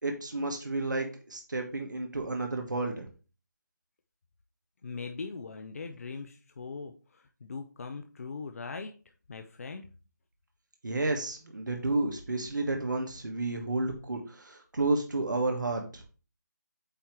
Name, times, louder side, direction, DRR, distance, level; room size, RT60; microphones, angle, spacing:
voice 1, 0.0-3.1 10.8-16.0, right 2 dB, 90° right, 2 dB, 1.4 m, -31 dB
voice 2, 4.8-8.9 9.3-9.8, left 4 dB, 50° left, 6 dB, 0.7 m, -40 dB
8.6 x 2.9 x 4.7 m, 0.35 s
figure-of-eight pair, 165°, 10 cm